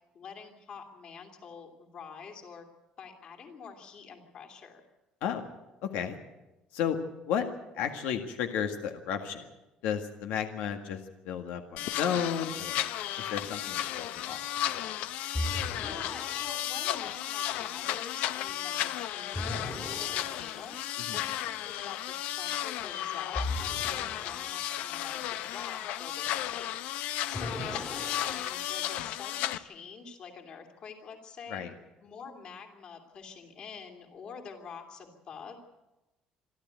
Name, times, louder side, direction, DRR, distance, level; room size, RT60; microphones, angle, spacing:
voice 1, 0.1-2.7 3.0-4.8 15.4-20.8 21.1-26.9 27.3-31.6 32.0-35.6, left 6 dB, 40° left, 4 dB, 2.9 m, -46 dB
voice 2, 5.8-6.2 6.7-7.0 7.3-7.5 7.7-9.5 9.8-12.8 13.2-14.4 21.0-21.2 31.5-31.7, left 8 dB, 90° left, 5 dB, 1.9 m, -33 dB
sound 1, 11.8-29.6, left 12 dB, 75° left, 0.9 m, -34 dB
sound 2, 15.3-16.8 19.3-20.8 23.3-24.7 27.3-28.9, left 1 dB, 10° left, 2.0 m, -38 dB
27.0 x 12.0 x 9.1 m, 1.0 s
cardioid pair, 175°, 3 cm